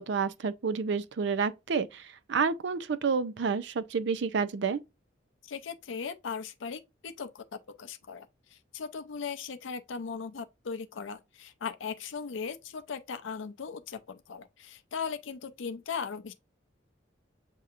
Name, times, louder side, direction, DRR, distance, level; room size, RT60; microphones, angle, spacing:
voice 1, 0.0-4.8, right 5 dB, 65° right, 0.4 m, -29 dB
voice 2, 5.4-7.4 7.8-16.3, left 6 dB, 80° left, 0.5 m, -38 dB
7.4 x 2.8 x 2.4 m
head